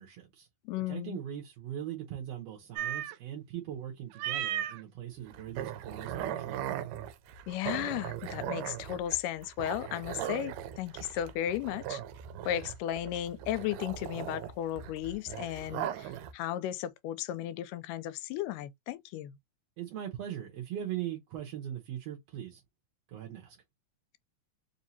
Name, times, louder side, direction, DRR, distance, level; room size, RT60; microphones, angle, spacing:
voice 1, 0.0-0.5 0.9-6.9 19.8-22.6 23.1-23.6, right 11 dB, 65° right, 1.8 m, -40 dB
voice 2, 0.7-1.2 7.5-12.0 12.5-19.3, left 12 dB, 90° left, 2.2 m, -35 dB
sound 1, 2.7-3.1 4.1-4.8 5.3-16.3, right 11 dB, 85° right, 2.1 m, -38 dB
4.9 x 2.7 x 2.7 m
omnidirectional pair, 3.7 m